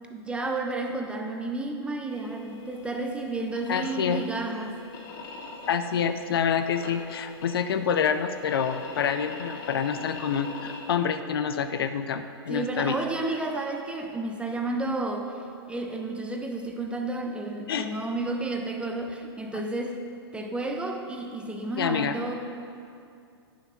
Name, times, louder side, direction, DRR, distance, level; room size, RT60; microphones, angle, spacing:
voice 1, 0.1-4.8 12.5-15.3 15.7-20.0 20.3-22.3, right 2 dB, 10° right, 3 dB, 0.8 m, -31 dB
sound 1, 2.1-10.9, left 4 dB, 50° left, 1.8 m, -43 dB
voice 2, 3.7-4.2 5.7-13.0 17.7-17.9 21.8-22.1, left 7 dB, 65° left, 9 dB, 0.6 m, -27 dB
9.1 x 7.1 x 5.8 m, 2.5 s
figure-of-eight pair, 110°, 13 cm